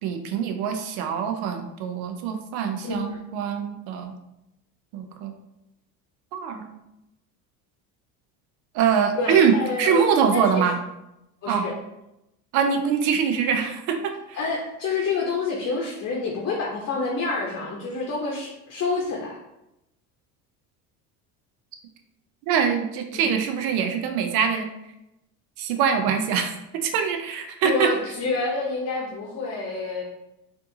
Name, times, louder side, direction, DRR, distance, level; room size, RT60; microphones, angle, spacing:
voice 1, 0.0-4.2 4.9-5.3 6.3-6.7 8.7-10.8 11.5-11.7 12.5-14.4 22.5-24.7 25.6-27.9, right 7 dB, 65° right, 6 dB, 0.7 m, -24 dB
voice 2, 2.8-3.2 9.1-10.7 11.4-11.7 14.3-19.4 23.1-23.3 27.6-30.0, left 3 dB, 35° left, -1 dB, 0.9 m, -28 dB
4.4 x 2.7 x 2.7 m, 0.88 s
hypercardioid pair, 80°, 43 cm